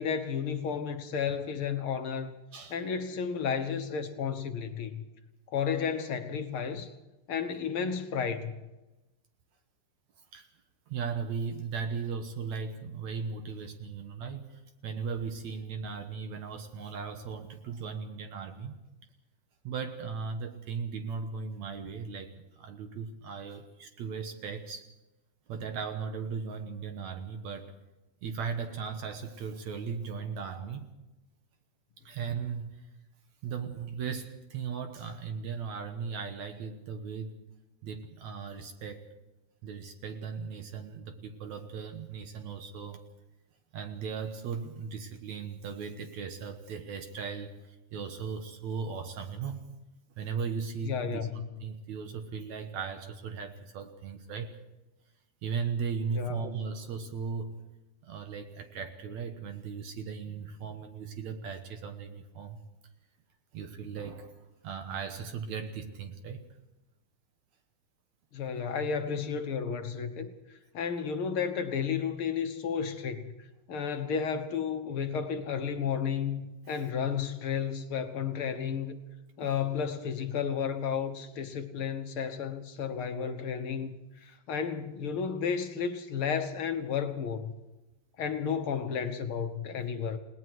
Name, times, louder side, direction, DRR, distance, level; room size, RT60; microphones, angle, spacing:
voice 1, 0.0-2.3 2.7-5.0 5.5-6.9 7.3-8.7 50.8-51.4 56.1-56.5 68.3-73.2 73.7-79.0 79.4-87.5 88.2-90.2, left 7 dB, 55° left, 7 dB, 1.6 m, -32 dB
voice 2, 10.9-18.8 19.6-24.9 25.5-27.8 28.2-30.9 32.0-32.7 33.4-37.3 37.8-39.1 39.6-43.0 43.7-49.6 50.2-54.6 55.4-57.6 58.0-62.6 63.5-66.5 79.4-79.5, right 6 dB, 65° right, 5 dB, 2.5 m, -37 dB
29.5 x 18.5 x 4.7 m, 1.0 s
omnidirectional pair, 3.6 m